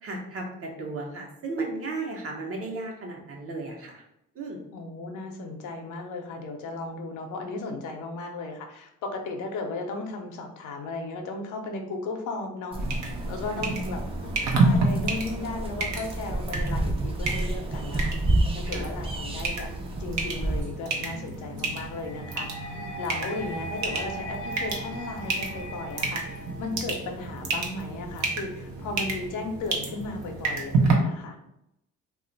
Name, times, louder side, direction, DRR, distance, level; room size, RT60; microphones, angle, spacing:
voice 1, 0.0-4.0 4.3-4.6 13.6-13.9 18.6-18.9 22.7-22.9, right 3 dB, 50° right, 0 dB, 0.9 m, -35 dB
voice 2, 4.7-12.8 13.3-18.1 18.5-19.7 20.0-22.5 23.0-31.4, left 3 dB, 85° left, 3 dB, 0.6 m, -35 dB
sound 1, 12.7-20.6, right 1 dB, 20° right, 0.4 m, -30 dB
sound 2, 12.8-30.9, right 3 dB, 70° right, 0.7 m, -30 dB
sound 3, 21.9-27.0, right 1 dB, 45° left, 0.6 m, -39 dB
2.4 x 2.1 x 3.9 m, 0.81 s
cardioid pair, 90°, 30 cm